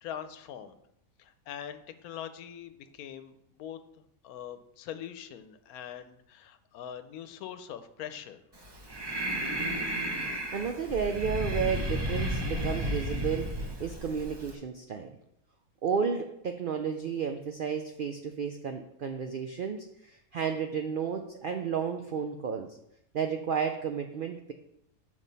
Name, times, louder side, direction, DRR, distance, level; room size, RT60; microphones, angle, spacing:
voice 1, 0.0-0.8 1.2-8.4, left 9 dB, 85° left, 10 dB, 1.1 m, -43 dB
Breathing, 8.6-14.5, equal, 25° right, 0.6 m, -33 dB
voice 2, 10.5-13.5 13.8-15.1 15.8-22.8 23.1-24.5, right 6 dB, 80° right, 5 dB, 0.4 m, -32 dB
7.3 x 5.1 x 4.0 m, 0.79 s
omnidirectional pair, 1.5 m